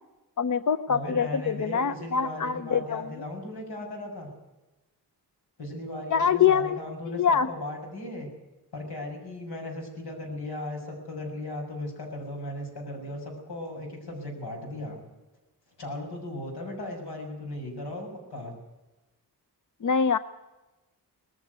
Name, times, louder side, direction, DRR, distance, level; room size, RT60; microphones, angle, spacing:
voice 1, 0.4-3.1 6.1-6.8 7.1-7.5 19.8-20.2, left 7 dB, 50° left, 13 dB, 0.6 m, -24 dB
voice 2, 0.9-4.3 5.6-8.3 8.7-15.0 15.8-18.5, left 1 dB, 90° left, 1 dB, 6.5 m, -37 dB
19.5 x 15.0 x 9.5 m, 1.1 s
wide cardioid pair, 120°, 38 cm